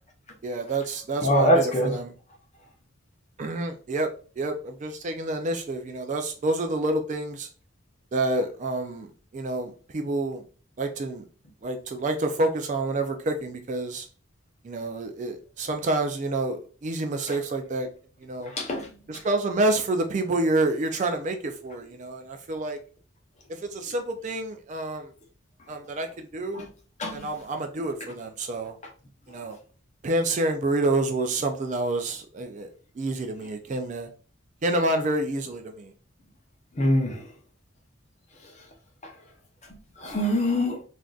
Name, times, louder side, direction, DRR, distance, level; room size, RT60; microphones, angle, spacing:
voice 1, 0.4-2.1 3.4-4.1 4.4-7.5 8.1-10.4 10.8-11.2 11.6-14.1 14.6-17.9 18.2-18.5 19.1-22.8 23.5-25.1 25.7-26.7 27.1-28.7 29.3-29.6 30.0-34.1 34.6-35.9, right 2 dB, 35° right, 6 dB, 0.3 m, -28 dB
voice 2, 1.2-1.9 18.5-18.9 26.5-26.6 27.0-27.3 36.8-37.2 40.0-40.8, left 1 dB, 35° left, 2 dB, 0.6 m, -23 dB
3.5 x 2.5 x 2.3 m, 0.38 s
head